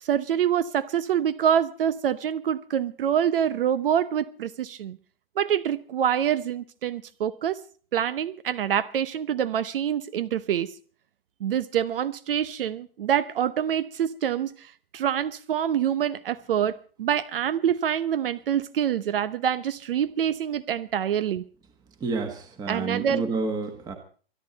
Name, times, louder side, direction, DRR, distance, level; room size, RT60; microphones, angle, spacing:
voice 1, 0.0-5.0 5.4-7.6 7.9-10.7 11.4-21.4 22.7-23.2, right 9 dB, 60° right, 15 dB, 0.9 m, -26 dB
voice 2, 22.0-23.9, right 3 dB, 10° right, 7 dB, 1.4 m, -29 dB
24.5 x 11.0 x 4.1 m, 0.42 s
hypercardioid pair, 150°, 31 cm